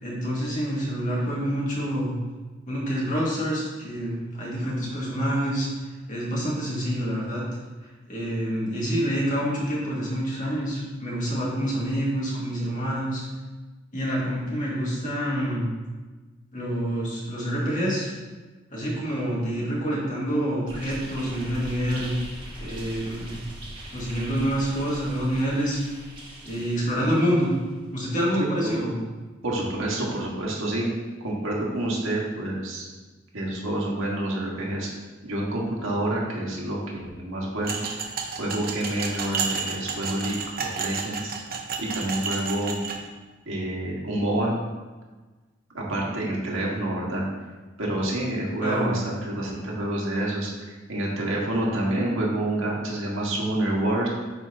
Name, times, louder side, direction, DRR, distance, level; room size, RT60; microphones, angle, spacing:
voice 1, 0.0-2.1 2.7-5.7 6.1-7.4 8.1-13.2 13.9-15.7 16.5-18.1 18.7-22.1 22.6-23.4 23.9-25.8 26.4-27.5 27.9-29.0 48.6-48.9, equal, 40° left, -5 dB, 1.9 m, -27 dB
sound 1, 20.7-27.7, right 1 dB, 25° right, 1.5 m, -41 dB
voice 2, 29.4-30.9 31.2-32.9 33.3-34.9 35.2-37.8 38.4-40.3 40.7-41.3 41.8-42.8 43.4-44.5 45.7-47.2 47.8-54.1, right 1 dB, 80° right, -3 dB, 1.6 m, -28 dB
sound 2, 37.6-43.0, right 5 dB, 50° right, 0.8 m, -31 dB
9.4 x 4.3 x 2.8 m, 1.3 s
head